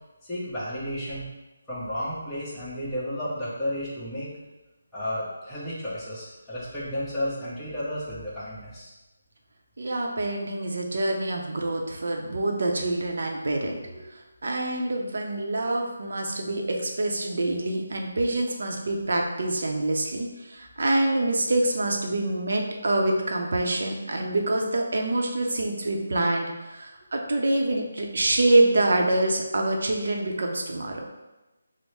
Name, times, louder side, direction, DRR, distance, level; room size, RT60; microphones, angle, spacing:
voice 1, 0.2-1.3 1.7-4.3 4.9-8.9, equal, 5° left, -14 dB, 1.0 m, -32 dB
voice 2, 9.8-14.1 14.4-31.0, right 2 dB, 65° right, 1 dB, 0.7 m, -26 dB
5.2 x 2.1 x 3.2 m, 1.1 s
figure-of-eight pair, 165°, 0 cm